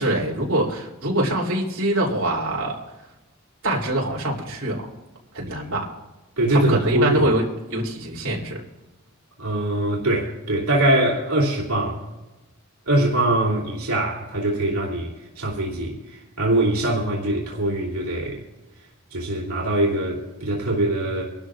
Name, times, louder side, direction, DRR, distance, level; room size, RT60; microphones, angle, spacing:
voice 1, 0.0-2.8 3.6-4.8 5.3-5.9 6.5-7.4 7.7-8.6, right 1 dB, 65° right, 3.1 m, -24 dB
voice 2, 6.4-7.2 9.4-12.0 12.9-18.4 19.1-21.2, right 1 dB, 80° right, 2.8 m, -23 dB
26.0 x 12.5 x 2.4 m
head